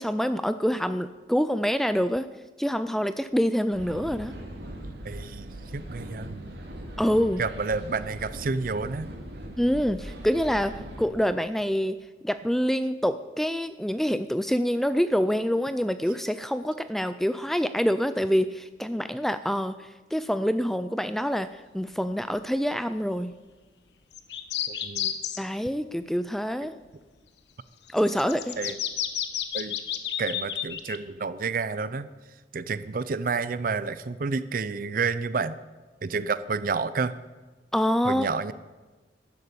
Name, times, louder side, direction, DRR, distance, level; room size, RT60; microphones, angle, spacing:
voice 1, 0.0-2.3 2.6-4.3 7.0-7.4 9.6-12.0 12.2-23.3 25.4-26.7 27.9-28.6 37.7-38.5, equal, ahead, 12 dB, 0.3 m, -26 dB
sound 1, 3.7-11.1, equal, 65° right, 2.7 m, -40 dB
voice 2, 5.0-6.5 7.4-9.1 24.7-25.2 28.6-28.8 29.5-29.8 30.2-32.1 32.5-35.6 36.0-37.1 38.0-38.5, right 4 dB, 50° right, 14 dB, 0.5 m, -30 dB
sound 2, 24.1-25.4 27.9-31.0, left 10 dB, 75° left, 1.2 m, -31 dB
12.5 x 11.0 x 8.4 m, 1.3 s
head